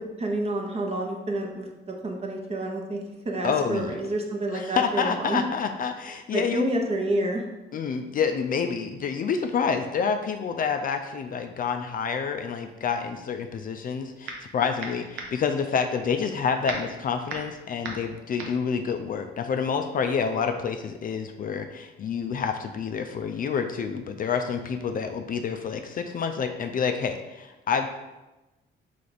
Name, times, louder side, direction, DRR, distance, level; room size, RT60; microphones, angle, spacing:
voice 1, 0.2-3.0 3.2-5.4 6.3-7.4, right 1 dB, 30° right, 1 dB, 0.8 m, -29 dB
voice 2, 3.4-3.9 4.5-6.7 7.7-27.9, left 6 dB, 45° left, 6 dB, 0.4 m, -28 dB
sound 1, 13.8-14.5 14.8-19.8, right 3 dB, 85° right, 0.7 m, -37 dB
3.3 x 3.3 x 4.0 m, 1.0 s
cardioid pair, 90°, 20 cm